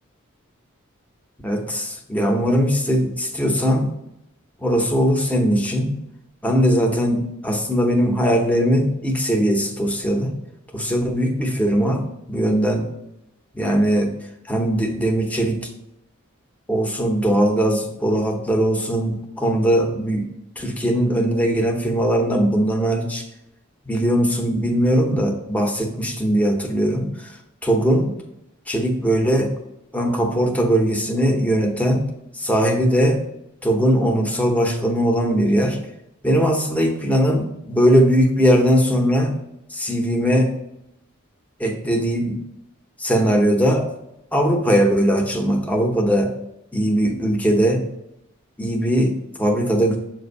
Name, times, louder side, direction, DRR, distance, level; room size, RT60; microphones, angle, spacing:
voice 1, 1.4-3.9 4.6-5.9 6.4-10.3 10.7-12.0 12.3-12.9 13.5-14.1 14.5-15.6 16.7-20.3 20.6-23.2 23.9-27.4 27.6-28.1 28.7-29.5 29.9-32.0 32.3-33.2 33.6-35.8 36.2-39.3 39.7-40.5 41.6-42.4 43.0-43.9 44.3-46.3 46.7-47.8 48.6-50.0, equal, 5° left, 2 dB, 0.8 m, -20 dB
7.4 x 2.6 x 5.2 m, 0.85 s
head